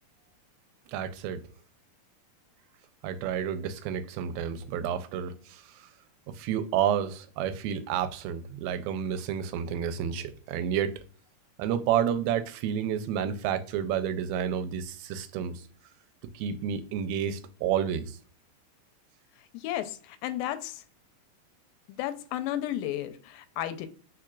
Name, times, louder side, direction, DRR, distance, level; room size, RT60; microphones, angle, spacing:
voice 1, 0.9-1.5 3.0-5.9 6.3-10.9 11.6-15.7 16.3-18.2, right 9 dB, 90° right, 2.4 m, -30 dB
voice 2, 19.5-20.8 21.9-23.9, left 12 dB, 85° left, 2.4 m, -33 dB
4.7 x 4.4 x 2.3 m
omnidirectional pair, 4.1 m